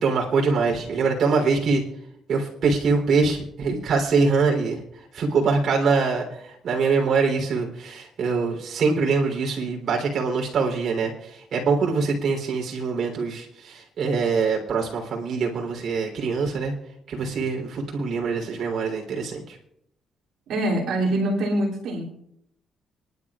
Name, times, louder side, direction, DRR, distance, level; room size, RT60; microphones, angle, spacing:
voice 1, 0.0-1.8 2.3-4.8 5.1-16.7 17.1-19.6, right 4 dB, 65° right, 1 dB, 3.5 m, -24 dB
voice 2, 20.5-22.1, right 1 dB, 80° right, -4 dB, 3.0 m, -24 dB
26.5 x 11.0 x 2.5 m, 0.77 s
cardioid pair, 90°, 0 cm